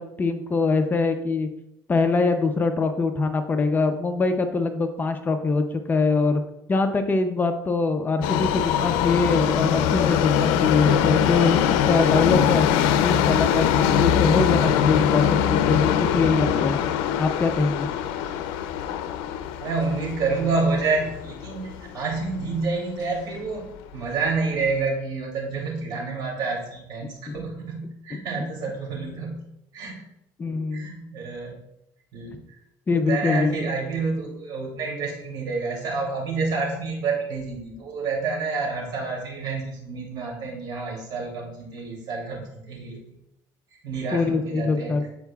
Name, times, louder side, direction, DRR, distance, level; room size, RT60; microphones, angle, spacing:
voice 1, 0.0-1.5 1.9-6.4 6.7-12.7 13.0-16.8 17.2-17.9 27.3-27.4 30.4-30.9 32.9-33.5 44.1-45.0, left 3 dB, 25° left, 7 dB, 0.6 m, -23 dB
Subway metro underground, 8.2-22.3 22.6-22.7 23.6-23.7 24.0-24.1 24.7-24.8, left 9 dB, 90° left, 0.5 m, -22 dB
voice 2, 19.6-23.7 23.9-29.4 29.7-30.0 30.7-31.6 32.1-32.6 32.9-43.0 43.8-45.0, right 4 dB, 60° right, -1 dB, 2.8 m, -28 dB
13.5 x 4.7 x 2.4 m, 0.84 s
cardioid pair, 125°, 8 cm